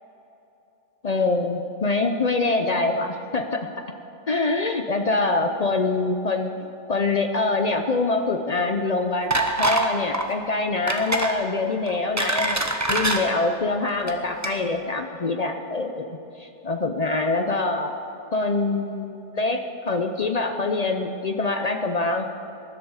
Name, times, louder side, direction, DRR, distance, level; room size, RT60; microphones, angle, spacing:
voice 1, 1.0-3.7 4.3-6.5 6.9-12.6 12.9-17.9 18.3-22.3, left 3 dB, 70° left, 5 dB, 0.3 m, -24 dB
sound 1, 9.3-9.9 10.1-10.3 10.9-11.3 11.9-13.2 13.9-14.1 14.4-14.5, right 2 dB, 15° right, 0.8 m, -24 dB
20.0 x 11.0 x 4.9 m, 2.9 s
omnidirectional pair, 1.7 m